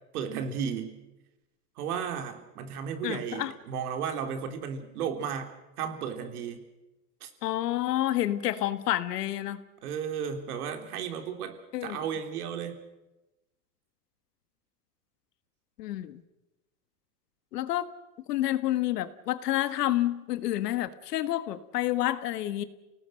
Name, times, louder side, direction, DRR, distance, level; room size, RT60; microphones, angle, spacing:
voice 1, 0.1-1.0 1.8-6.6 7.2-7.3 9.8-12.8, right 7 dB, 70° right, 6 dB, 3.7 m, -34 dB
voice 2, 3.0-3.5 7.4-9.6 11.7-12.0 15.8-16.2 17.5-17.9 18.3-22.6, left 14 dB, 85° left, 12 dB, 1.7 m, -29 dB
29.5 x 18.5 x 6.5 m, 0.99 s
supercardioid pair, 165°, 47 cm